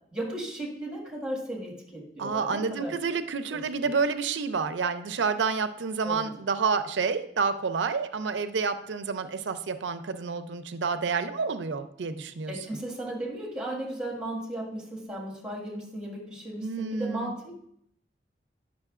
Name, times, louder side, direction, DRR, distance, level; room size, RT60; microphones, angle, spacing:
voice 1, 0.1-2.9 3.5-3.9 6.0-6.3 12.5-17.5, right 1 dB, 5° right, -3 dB, 1.7 m, -36 dB
voice 2, 2.2-12.5 16.6-17.4, right 5 dB, 85° right, 10 dB, 0.5 m, -29 dB
9.8 x 6.1 x 2.4 m, 0.70 s
head